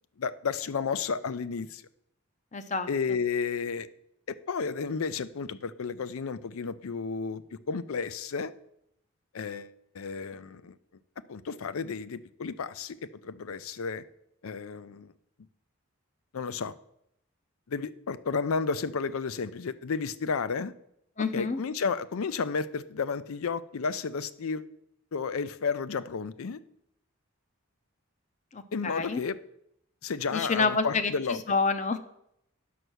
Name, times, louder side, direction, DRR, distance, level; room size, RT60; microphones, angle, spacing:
voice 1, 0.2-1.8 2.9-3.9 4.3-8.5 9.3-10.8 11.3-13.0 13.2-14.0 14.4-15.1 16.3-16.7 17.7-20.7 21.3-24.7 25.1-26.6 28.7-29.4 30.0-31.4, left 5 dB, 75° left, 16 dB, 0.5 m, -32 dB
voice 2, 2.5-3.2 21.2-21.6 28.5-29.2 30.3-32.0, left 4 dB, 35° left, 10 dB, 0.6 m, -28 dB
9.3 x 6.7 x 6.3 m, 0.77 s
head